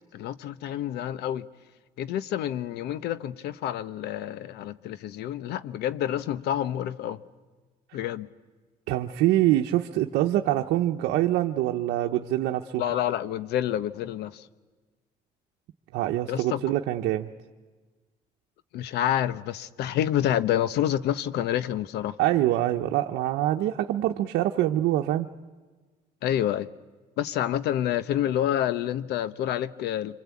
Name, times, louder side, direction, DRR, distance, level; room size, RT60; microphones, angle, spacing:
voice 1, 0.1-1.5 2.0-7.2 7.9-8.3 12.8-14.4 16.3-16.6 18.7-22.1 26.2-26.7 27.2-30.2, left 11 dB, 80° left, 1.0 m, -28 dB
voice 2, 8.9-12.8 15.9-17.3 22.2-25.3, right 14 dB, 85° right, 1.0 m, -25 dB
26.5 x 25.0 x 8.5 m
cardioid pair, 110°, 17 cm